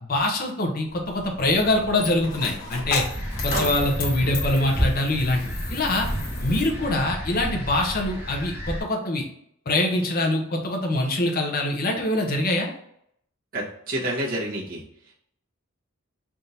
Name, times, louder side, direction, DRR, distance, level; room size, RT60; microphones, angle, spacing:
voice 1, 0.0-3.0 3.4-6.1 6.4-9.2 9.7-12.7, left 1 dB, 45° left, 2 dB, 0.7 m, -24 dB
Coin (dropping), 0.9-7.0, left 3 dB, 70° left, 1.2 m, -35 dB
sound 1, 2.7-8.8, equal, 10° right, 1.1 m, -30 dB
voice 2, 13.5-14.8, right 1 dB, 40° right, -6 dB, 1.2 m, -28 dB
3.5 x 2.7 x 4.1 m, 0.70 s
head